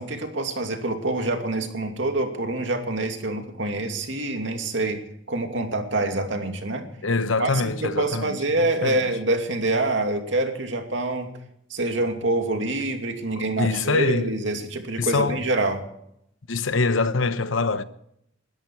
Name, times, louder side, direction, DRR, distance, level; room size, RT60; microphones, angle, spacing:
voice 1, 0.0-5.0 5.3-6.9 7.4-11.3 11.7-15.8, right 2 dB, 65° right, 2.7 m, -26 dB
voice 2, 7.0-8.4 8.8-9.1 13.6-14.3 15.0-15.5 16.5-17.8, left 3 dB, 80° left, 1.0 m, -24 dB
21.5 x 13.0 x 4.7 m
head